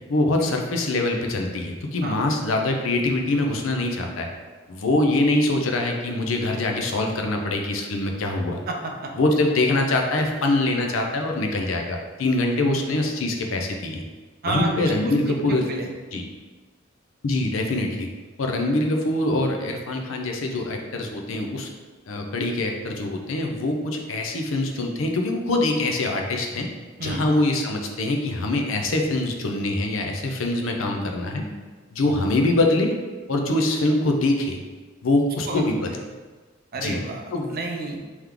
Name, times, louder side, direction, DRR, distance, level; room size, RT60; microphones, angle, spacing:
voice 1, 0.1-4.3 4.7-8.6 9.1-14.0 14.4-15.7 16.1-16.2 17.2-18.1 18.4-21.7 22.1-26.7 27.0-31.5 31.9-32.9 33.3-34.6 35.0-35.9 36.8-37.0 37.3-37.6, left 2 dB, 80° left, 2 dB, 0.6 m, -24 dB
voice 2, 8.7-9.1 14.4-15.4 15.7-15.9 27.0-27.2 35.5-35.6 36.7-38.0, right 3 dB, 50° right, 1 dB, 0.6 m, -30 dB
3.4 x 3.1 x 3.7 m, 1.4 s
head